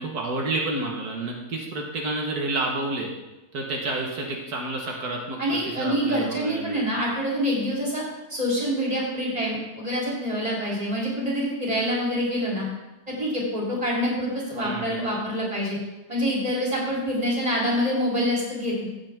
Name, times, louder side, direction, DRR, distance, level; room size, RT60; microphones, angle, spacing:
voice 1, 0.0-3.1 3.5-6.9 14.6-15.0, right 2 dB, 85° right, -1 dB, 2.0 m, -30 dB
voice 2, 5.4-8.0 8.3-12.7 13.2-15.8 16.1-18.9, equal, 25° right, -4 dB, 3.8 m, -26 dB
15.5 x 8.5 x 3.7 m, 1.0 s
omnidirectional pair, 1.6 m